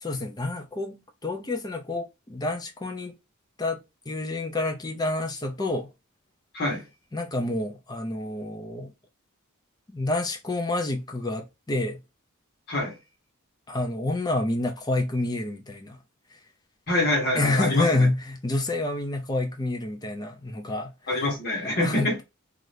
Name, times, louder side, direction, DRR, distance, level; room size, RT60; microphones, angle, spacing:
voice 1, 0.0-3.1 3.6-3.8 4.1-5.9 7.1-8.9 9.9-12.0 13.7-16.0 17.3-20.9 21.6-22.2, left 2 dB, 20° left, 0.5 m, -28 dB
voice 2, 16.9-18.1 21.1-22.1, left 1 dB, 50° left, 1.1 m, -25 dB
2.7 x 2.5 x 3.2 m
head